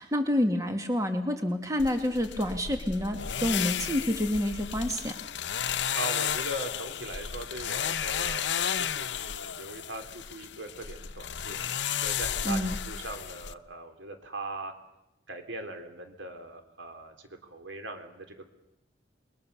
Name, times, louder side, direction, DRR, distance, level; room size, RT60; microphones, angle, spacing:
voice 1, 0.0-5.1 12.5-12.8, left 1 dB, 15° right, 5 dB, 2.1 m, -28 dB
sound 1, 1.8-13.5, left 8 dB, 70° left, 0.8 m, -33 dB
voice 2, 5.9-11.6 12.0-14.7 15.3-18.5, right 2 dB, 90° right, 6 dB, 3.5 m, -40 dB
27.5 x 22.0 x 6.9 m, 0.88 s
head